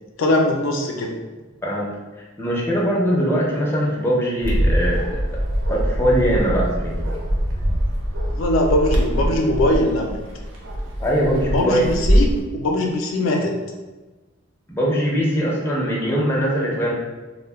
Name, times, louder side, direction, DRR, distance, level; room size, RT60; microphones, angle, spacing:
voice 1, 0.2-1.2 8.3-10.2 11.5-12.3 12.5-13.6, left 1 dB, 85° left, 2 dB, 0.4 m, -21 dB
voice 2, 2.4-5.2 5.7-6.9 11.0-11.9 14.7-16.9, equal, 10° left, -5 dB, 0.5 m, -21 dB
Bark, 4.4-12.4, equal, 75° right, 0.5 m, -23 dB
2.1 x 2.1 x 3.3 m, 1.2 s
head